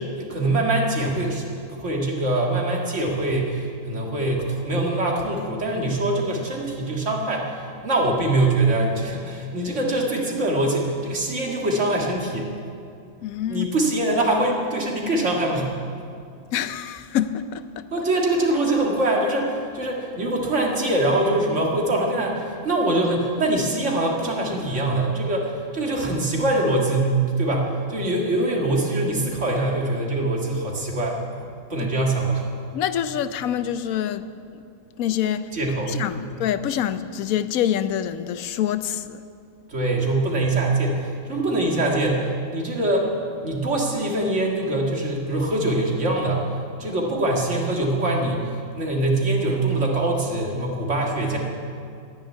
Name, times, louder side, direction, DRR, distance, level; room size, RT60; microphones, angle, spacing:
voice 1, 0.0-1.5 1.8-12.5 13.5-15.7 17.9-32.4 35.5-36.4 39.7-43.1 43.4-46.5 46.8-51.4, right 2 dB, 60° right, 2.3 m, -23 dB
voice 2, 13.2-13.7 16.5-17.9 32.7-34.6 35.0-35.5 35.9-39.2, left 10 dB, 90° left, 1.1 m, -26 dB
11.5 x 10.0 x 9.2 m
omnidirectional pair, 1.4 m